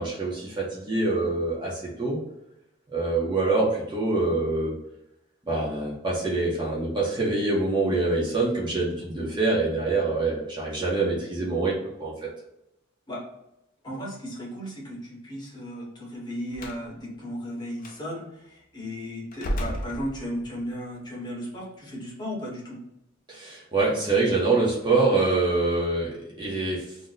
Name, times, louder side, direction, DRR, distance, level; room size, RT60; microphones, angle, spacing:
voice 1, 0.0-2.2 2.9-4.7 5.5-11.7 12.0-12.1 23.3-27.1, right 3 dB, 25° right, -5 dB, 0.7 m, -25 dB
voice 2, 13.8-22.8, equal, 20° left, -4 dB, 0.9 m, -35 dB
Slam, 16.5-16.9 17.8-18.0 19.3-20.6, equal, 40° left, 0.4 m, -32 dB
2.5 x 2.1 x 3.9 m, 0.84 s
head